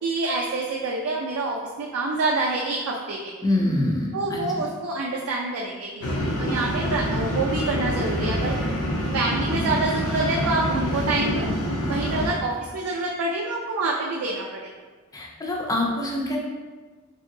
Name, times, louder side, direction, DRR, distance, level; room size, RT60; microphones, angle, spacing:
voice 1, 0.0-3.3 4.1-8.6 9.1-11.5 11.9-14.7, right 3 dB, 80° right, -2 dB, 0.3 m, -27 dB
voice 2, 3.4-4.6 15.1-16.4, left 1 dB, 15° left, -1 dB, 0.3 m, -25 dB
sound 1, 6.0-12.3, equal, 75° left, 0.5 m, -26 dB
2.9 x 2.7 x 2.6 m, 1.4 s
head